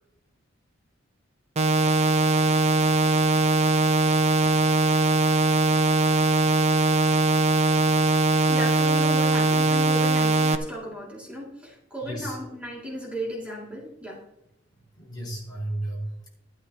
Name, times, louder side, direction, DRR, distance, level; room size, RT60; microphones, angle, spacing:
sound 1, 1.6-10.6, right 3 dB, 35° right, 0.6 m, -21 dB
voice 1, 8.5-14.2, equal, 5° right, -4 dB, 2.3 m, -35 dB
voice 2, 12.0-12.4 15.0-16.3, right 1 dB, 20° left, -4 dB, 4.8 m, -33 dB
13.5 x 12.0 x 2.9 m, 0.84 s
head